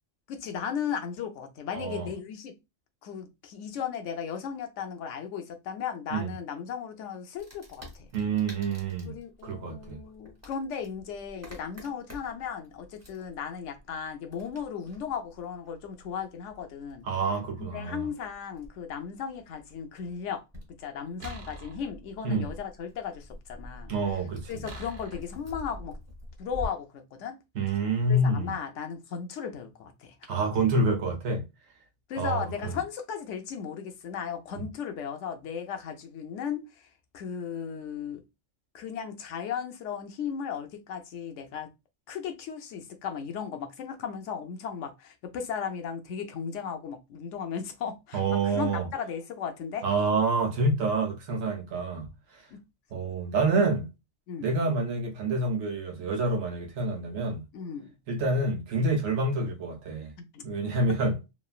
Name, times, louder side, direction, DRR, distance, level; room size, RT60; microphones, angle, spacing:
voice 1, 0.3-2.5 3.0-8.1 9.1-17.1 17.6-20.4 20.8-23.9 24.5-26.0 26.4-27.4 28.1-30.3 32.1-36.9 37.1-38.2 38.7-41.7 42.1-49.8 52.5-52.6 54.3-54.5 57.5-57.9 60.3-60.4, left 7 dB, 70° left, 0.9 m, -36 dB
voice 2, 1.7-2.1 6.1-6.3 8.1-9.2 9.4-10.0 17.0-18.1 22.2-22.5 23.9-24.7 27.5-28.5 30.3-31.4 32.2-32.8 34.6-34.7 48.1-48.9 49.8-52.5 52.9-53.9 54.4-57.4 58.1-60.1 60.4-61.2, right 2 dB, 75° right, 1.0 m, -27 dB
Wood, 7.4-26.7, left 1 dB, 15° right, 0.7 m, -48 dB
sound 1, 21.2-22.4 24.6-25.4, right 1 dB, 55° right, 0.8 m, -44 dB
3.1 x 2.2 x 2.4 m
omnidirectional pair, 1.4 m